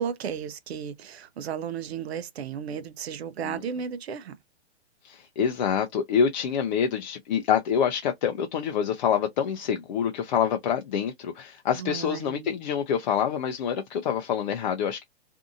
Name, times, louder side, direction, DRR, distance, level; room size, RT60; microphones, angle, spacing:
voice 1, 0.0-4.3 11.8-12.5, right 7 dB, 70° right, 0.6 m, -34 dB
voice 2, 5.0-15.0, left 8 dB, 45° left, 0.4 m, -26 dB
2.6 x 2.5 x 2.4 m
hypercardioid pair, 140°, 33 cm